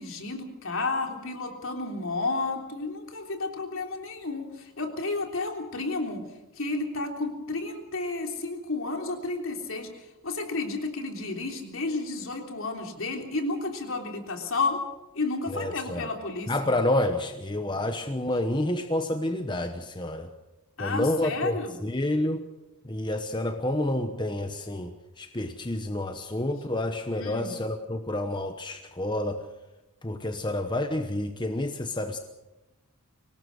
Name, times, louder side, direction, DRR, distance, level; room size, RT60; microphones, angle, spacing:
voice 1, 0.0-6.2 6.6-9.9 10.2-14.8 15.1-16.5 20.8-21.8 27.2-27.6, left 3 dB, 65° left, 3 dB, 3.4 m, -31 dB
voice 2, 15.5-16.1 16.5-20.3 20.8-22.4 22.8-24.9 25.2-29.4 30.0-32.2, left 1 dB, 20° left, 7 dB, 1.0 m, -29 dB
24.5 x 19.0 x 6.4 m, 0.99 s
head